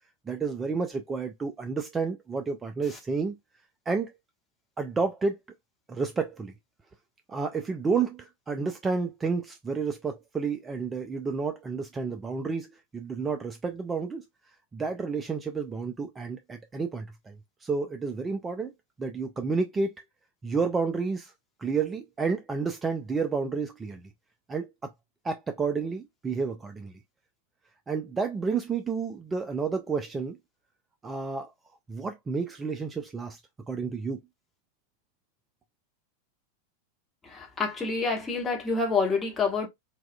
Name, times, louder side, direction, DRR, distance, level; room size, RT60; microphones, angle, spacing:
voice 1, 0.3-3.4 3.9-4.1 4.8-5.4 5.9-6.5 7.3-12.7 12.9-14.3 14.7-18.7 19.0-19.9 20.4-21.3 21.6-24.1 24.5-24.9 25.2-27.0 27.9-30.4 31.0-31.5 31.9-33.4 33.7-34.2, right 4 dB, 15° right, 0.4 m, -30 dB
voice 2, 37.3-39.7, left 4 dB, 15° left, 1.1 m, -27 dB
4.0 x 2.3 x 2.2 m
figure-of-eight pair, 90°, 0 cm